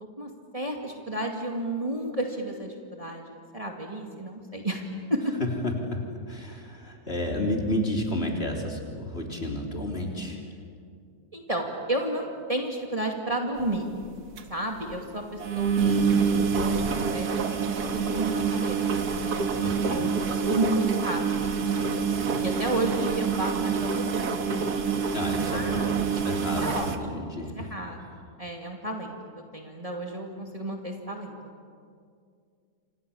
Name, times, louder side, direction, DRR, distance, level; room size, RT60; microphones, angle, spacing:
voice 1, 0.2-5.3 11.3-13.9 14.5-17.3 17.6-18.9 19.2-21.2 21.5-24.5 25.4-25.9 26.6-27.3 27.6-29.1 29.5-31.4, right 1 dB, 20° right, 1 dB, 2.5 m, -32 dB
voice 2, 5.4-10.6 19.6-20.1 25.1-27.6, left 1 dB, 40° left, 1 dB, 3.8 m, -31 dB
sound 1, 13.6-13.8 14.0-14.1 14.4-14.5 14.8-14.9 15.4-27.0, right 6 dB, 80° right, 2.0 m, -27 dB
29.0 x 27.0 x 7.2 m, 2.3 s
omnidirectional pair, 1.6 m